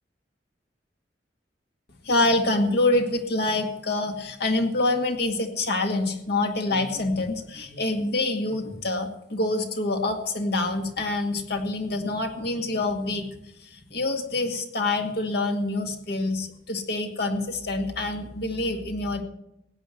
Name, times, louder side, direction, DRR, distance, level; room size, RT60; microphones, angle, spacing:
voice 1, 2.0-13.3 13.7-19.2, left 2 dB, 60° left, 4 dB, 2.0 m, -26 dB
16.0 x 9.4 x 7.7 m, 0.83 s
head